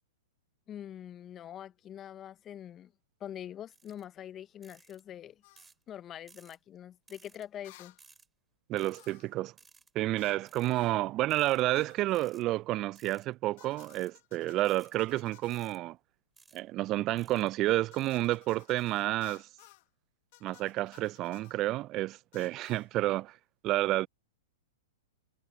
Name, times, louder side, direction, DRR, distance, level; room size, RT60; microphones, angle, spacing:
voice 1, 0.7-2.9 3.2-5.4 5.9-8.0, left 10 dB, 25° left, 0.8 m, -44 dB
sound 1, 3.7-4.0 4.6-5.0 5.6-5.8 6.3-6.6 7.1-7.5 8.0-8.3 8.8-9.1 9.6-9.9 10.5-10.7 11.3-11.6 12.1-12.4 13.0-13.3 13.7-14.1 14.6-15.0 15.5-15.8 16.4-16.6 17.2-17.5 18.0-18.3 18.8-19.0, right 4 dB, 10° right, 4.8 m, -59 dB
sound 2, 5.4-5.7 7.6-8.0 8.9-9.4 10.2-10.4 10.7-11.0 11.7-12.3 13.6-15.7 17.9-19.9 20.3-21.6 22.3-22.9, left 22 dB, 50° left, 1.4 m, -58 dB
voice 2, 8.7-9.5 9.9-16.0 16.5-19.5 20.4-23.4 23.6-24.1, right 16 dB, 35° right, 0.4 m, -30 dB
hypercardioid pair, 110°, 0 cm